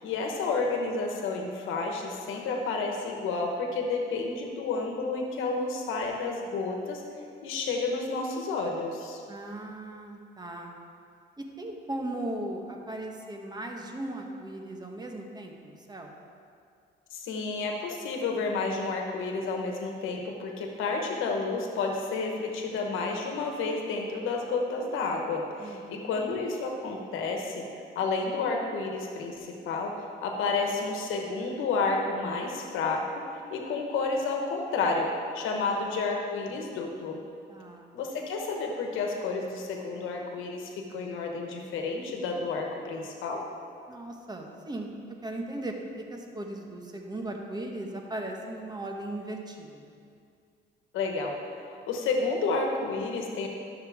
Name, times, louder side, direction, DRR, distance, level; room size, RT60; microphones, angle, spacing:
voice 1, 0.0-7.0 7.4-9.2 17.1-27.7 27.9-29.9 30.2-33.2 33.5-37.2 37.9-43.4 50.9-51.3 51.9-53.5, left 3 dB, 90° left, 2 dB, 1.2 m, -30 dB
voice 2, 9.3-10.7 11.4-16.1 25.6-26.2 35.6-35.8 37.5-37.9 43.9-49.9, right 1 dB, 20° right, 2 dB, 1.1 m, -38 dB
11.5 x 6.8 x 3.5 m, 2.3 s
cardioid pair, 90°, 20 cm